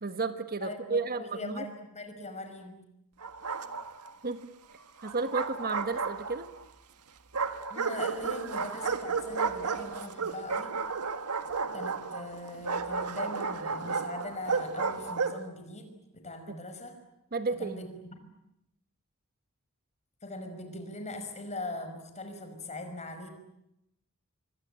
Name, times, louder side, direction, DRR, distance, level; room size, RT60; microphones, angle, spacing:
voice 1, 0.0-1.6 4.2-4.5 5.0-6.5 16.5-16.6 17.3-17.8, right 3 dB, 45° right, 10 dB, 1.4 m, -32 dB
voice 2, 0.6-2.8 7.7-10.7 11.7-17.0 17.6-18.2 20.2-23.3, left 2 dB, 30° left, 7 dB, 5.4 m, -41 dB
Bark, 3.2-4.1 5.0-6.6 7.3-15.5, right 5 dB, 90° right, 1.7 m, -33 dB
26.0 x 24.0 x 9.1 m, 0.82 s
head